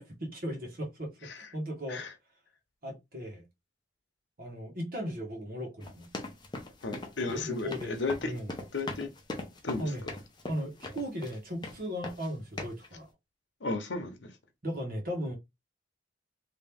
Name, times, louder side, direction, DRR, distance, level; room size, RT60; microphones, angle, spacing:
voice 1, 0.0-2.0 2.8-3.4 4.4-6.1 7.3-8.0 8.2-8.5 9.8-10.0 10.5-13.1 14.6-15.4, equal, 50° right, 1.4 m, -37 dB
sound 1, 5.8-11.4 11.6-12.3 12.6-12.9, left 2 dB, 25° left, 0.7 m, -40 dB
voice 2, 6.8-8.3 8.7-9.1 9.6-9.9 13.6-14.2, left 3 dB, 80° left, 0.9 m, -34 dB
3.0 x 2.9 x 3.5 m
head